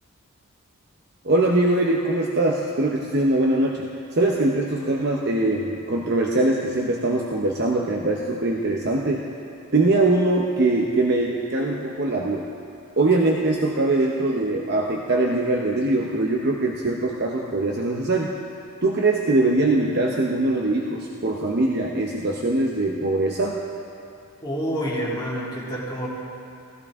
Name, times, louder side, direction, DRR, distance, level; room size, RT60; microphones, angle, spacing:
voice 1, 1.2-3.8 4.1-9.2 9.7-12.4 13.0-18.3 18.8-23.6, right 2 dB, 50° right, -1 dB, 0.8 m, -22 dB
voice 2, 24.4-26.1, equal, 20° left, -6 dB, 2.4 m, -28 dB
16.5 x 14.5 x 3.6 m, 2.6 s
head